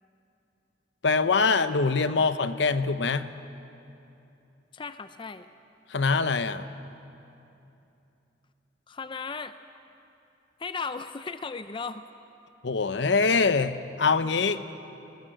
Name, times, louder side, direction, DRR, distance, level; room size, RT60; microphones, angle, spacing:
voice 1, 1.0-3.3 5.9-6.7 12.6-14.6, left 4 dB, 65° left, 12 dB, 0.7 m, -24 dB
voice 2, 4.7-5.5 8.9-9.5 10.6-12.0, left 5 dB, 25° left, 11 dB, 0.4 m, -36 dB
19.5 x 19.5 x 7.8 m, 2.8 s
head